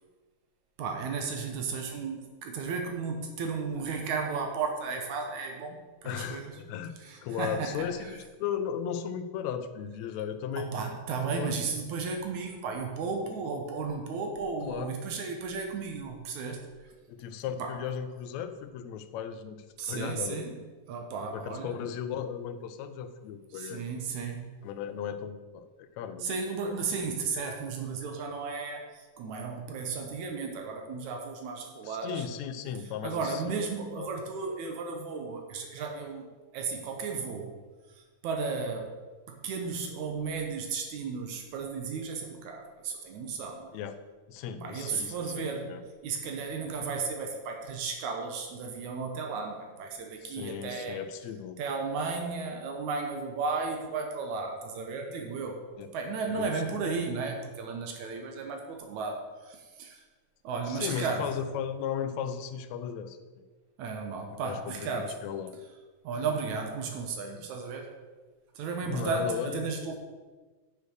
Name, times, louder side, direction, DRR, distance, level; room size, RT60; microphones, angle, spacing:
voice 1, 0.8-6.6 7.0-8.1 10.6-16.9 17.6-17.8 19.8-20.6 20.9-21.8 23.5-24.5 26.2-32.3 33.0-36.3 36.5-37.6 37.9-39.0 39.3-43.8 44.6-45.7 46.0-51.0 51.6-55.6 55.9-60.0 60.4-61.3 63.8-65.1 66.0-67.9 68.6-69.9, right 4 dB, 80° right, 3 dB, 2.4 m, -34 dB
voice 2, 6.0-7.0 7.2-10.7 11.4-11.6 14.6-14.9 17.1-20.5 21.3-23.8 24.6-26.8 31.8-33.6 34.0-34.1 43.7-44.0 44.3-45.8 50.2-51.6 55.8-55.9 56.3-56.5 60.7-63.4 64.4-65.6 67.4-67.5 68.9-69.7, left 8 dB, 75° left, 10 dB, 1.9 m, -36 dB
8.3 x 6.7 x 6.3 m, 1.3 s
omnidirectional pair, 3.3 m